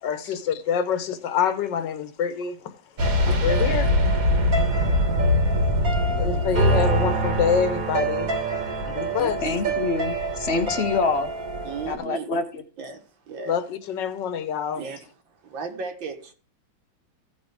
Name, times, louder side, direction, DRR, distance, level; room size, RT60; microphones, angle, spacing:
voice 1, 0.0-2.8 3.2-4.0 4.6-4.7 6.2-8.3 8.8-9.4 10.5-10.7 13.5-14.8, left 7 dB, 70° left, 1.6 m, -26 dB
sound 1, 3.0-12.0, equal, 50° right, 1.7 m, -23 dB
voice 2, 3.0-3.7 4.6-4.9 6.0-6.6 9.2-9.7 11.6-12.4 12.8-13.6 14.7-15.0 15.3-16.3, right 5 dB, 80° right, 2.1 m, -37 dB
voice 3, 9.4-11.3 11.9-12.6, left 4 dB, 50° left, 0.8 m, -26 dB
15.5 x 5.4 x 3.5 m
omnidirectional pair, 2.1 m